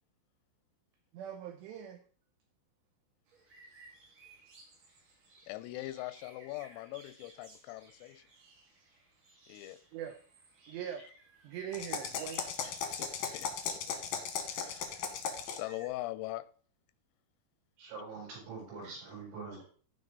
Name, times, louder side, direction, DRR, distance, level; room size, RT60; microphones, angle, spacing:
voice 1, 1.1-2.0 9.9-10.2 10.7-11.0 11.4-12.4, right 9 dB, 90° right, 2.4 m, -41 dB
sound 1, 3.3-15.9, right 3 dB, 45° right, 3.5 m, -59 dB
voice 2, 5.5-8.2 9.5-9.8 12.6-14.0 14.5-15.1 15.5-16.5, left 18 dB, 90° left, 3.4 m, -42 dB
sound 2, 11.7-15.7, left 6 dB, 70° left, 2.1 m, -37 dB
voice 3, 17.8-19.6, right 4 dB, 70° right, 8.9 m, -44 dB
15.0 x 5.3 x 4.0 m
omnidirectional pair, 5.9 m